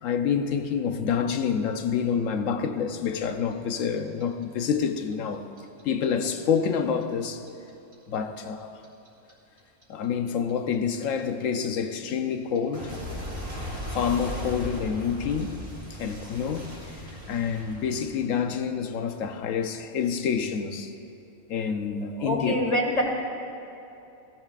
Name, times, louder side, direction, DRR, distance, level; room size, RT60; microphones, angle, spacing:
voice 1, 0.0-5.4 5.8-7.5 8.1-8.8 9.9-12.9 13.9-15.6 15.9-16.7 17.3-20.9 21.5-22.6, left 7 dB, 75° left, 1.1 m, -27 dB
Clock, 3.0-6.0 6.3-9.3 9.6-18.4, equal, 25° right, 3.4 m, -37 dB
voice 2, 22.1-23.0, equal, 30° left, 1.7 m, -25 dB
18.0 x 15.0 x 2.4 m
omnidirectional pair, 1.4 m